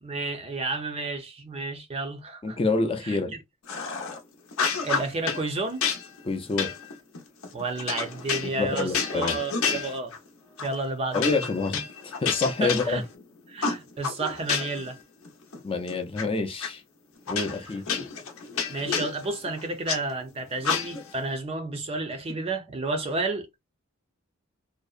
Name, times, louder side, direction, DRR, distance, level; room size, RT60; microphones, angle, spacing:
voice 1, 0.0-2.6 3.0-3.2 4.8-5.8 7.5-10.1 10.6-11.4 12.6-13.0 13.5-15.0 18.7-23.5, right 3 dB, 30° right, 0.5 m, -31 dB
voice 2, 2.4-3.3 6.2-6.7 8.4-9.4 11.1-13.0 15.6-16.8 17.3-17.8, left 3 dB, 25° left, 0.4 m, -27 dB
sound 1, 3.7-4.2 4.5-5.4 5.8-10.3 10.6-10.8 11.1-13.2 13.6-14.9 15.2-16.2 16.6-16.7 17.3-20.0 20.6-21.2, left 5 dB, 85° left, 0.6 m, -30 dB
2.6 x 2.0 x 2.3 m
head